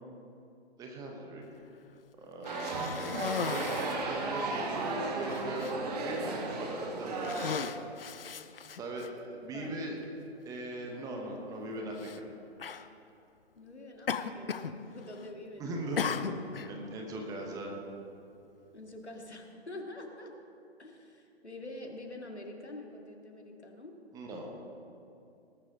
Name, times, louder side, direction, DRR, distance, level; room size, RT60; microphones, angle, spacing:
voice 1, 0.8-1.5 2.2-7.3 8.7-9.9 10.4-12.2 15.6-16.2 16.7-17.7 24.1-24.5, right 1 dB, 10° right, 1 dB, 1.1 m, -39 dB
Cough, 2.4-4.1 4.8-4.9 5.3-5.8 6.5-6.8 7.1-9.1 10.0-10.1 12.0-12.2 12.6-12.9 14.1-14.8 15.0-15.4 16.0-16.7, left 6 dB, 60° left, 0.8 m, -37 dB
sound 1, 2.4-7.5, right 3 dB, 35° right, 2.0 m, -35 dB
voice 2, 9.5-9.9 13.6-16.7 18.7-20.3 20.8-23.9, left 2 dB, 80° left, 2 dB, 2.3 m, -46 dB
18.5 x 13.0 x 3.9 m, 2.7 s
figure-of-eight pair, 135°, 33 cm